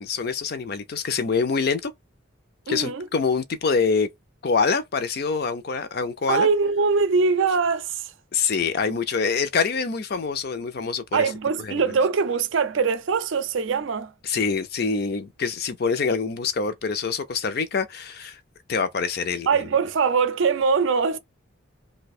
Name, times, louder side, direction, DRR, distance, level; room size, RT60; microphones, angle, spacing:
voice 1, 0.0-1.9 2.7-4.1 4.4-6.5 8.3-11.2 11.7-11.8 14.2-18.4 18.7-19.5, left 5 dB, 50° left, 0.4 m, -25 dB
voice 2, 2.7-3.1 6.3-8.1 11.1-14.1 19.5-21.2, right 5 dB, 70° right, 0.4 m, -22 dB
2.7 x 2.2 x 4.1 m
head